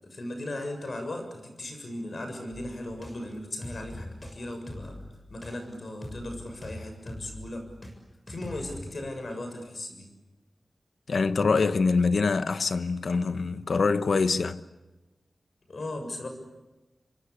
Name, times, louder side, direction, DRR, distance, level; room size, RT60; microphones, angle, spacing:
voice 1, 0.0-5.0 5.3-7.7 8.3-10.1 15.7-16.3, left 1 dB, 60° left, 7.1 m, -37 dB
sound 1, 2.5-7.9 8.3-8.8, left 1 dB, 30° left, 7.0 m, -42 dB
voice 2, 11.1-14.6, left 4 dB, 80° left, 1.1 m, -24 dB
27.5 x 24.5 x 8.5 m
wide cardioid pair, 90°, 0 cm